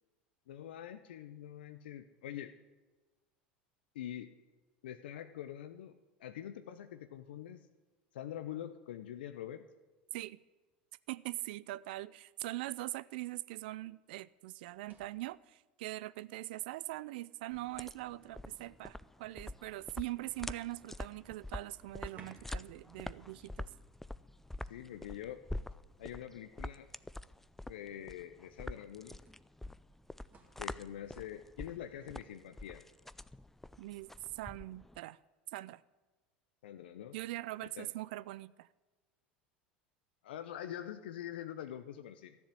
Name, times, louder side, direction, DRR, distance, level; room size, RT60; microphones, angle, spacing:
voice 1, 0.5-2.5 3.9-4.3 4.8-5.9 6.2-7.7 8.1-9.6 24.7-25.4 26.0-26.9 27.7-29.2 30.6-32.8 36.6-37.2 37.6-37.9 40.2-42.4, left 11 dB, 80° left, 9 dB, 0.6 m, -45 dB
voice 2, 11.1-23.7 33.8-35.2 35.5-35.8 37.1-38.7, right 18 dB, 70° right, 20 dB, 0.4 m, -42 dB
sound 1, 14.6-15.4 16.7-16.8 17.3-18.9 21.0-21.1 21.3-21.4 22.0-22.7 23.0-23.2 24.7-25.5 26.6-26.7 28.3-28.4 29.3-30.7 34.1-34.4, right 4 dB, 30° right, 2.2 m, -62 dB
sound 2, 17.5-35.0, left 1 dB, 5° left, 0.4 m, -46 dB
12.5 x 7.1 x 9.8 m, 1.2 s
hypercardioid pair, 90°, 5 cm